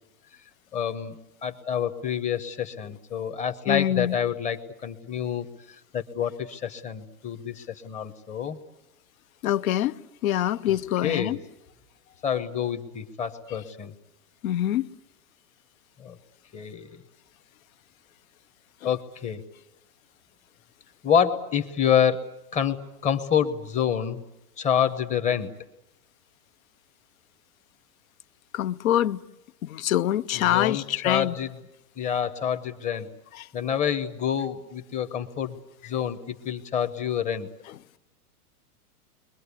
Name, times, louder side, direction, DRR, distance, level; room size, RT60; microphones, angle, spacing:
voice 1, 0.7-5.5 5.9-8.6 11.0-11.4 12.2-13.9 16.0-16.2 16.5-17.0 18.8-19.4 21.0-22.8 23.0-24.2 24.6-25.5 30.3-31.5 32.0-33.1 33.5-35.6 35.9-37.5, left 8 dB, 15° left, 1.0 m, -27 dB
voice 2, 3.7-4.2 9.4-9.9 10.2-11.4 14.4-14.9 28.5-29.2 29.6-31.3, left 12 dB, 60° left, 0.9 m, -24 dB
30.0 x 22.5 x 8.3 m
supercardioid pair, 150°, 47 cm